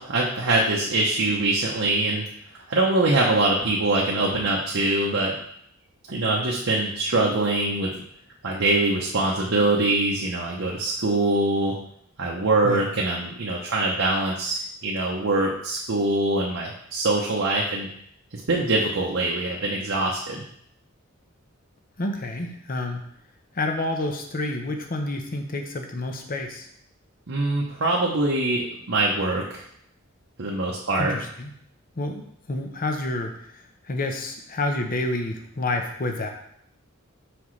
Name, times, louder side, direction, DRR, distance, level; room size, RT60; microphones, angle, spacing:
voice 1, 0.0-2.3 2.7-5.4 6.1-7.9 8.4-11.7 12.2-17.9 18.3-20.4 27.3-29.6 30.4-31.1, right 2 dB, 65° right, -3 dB, 0.8 m, -23 dB
voice 2, 22.0-23.0 23.6-26.7 31.0-31.5 32.0-33.3 33.9-36.3, left 2 dB, 40° left, 4 dB, 0.8 m, -29 dB
6.0 x 5.2 x 3.2 m, 0.68 s
head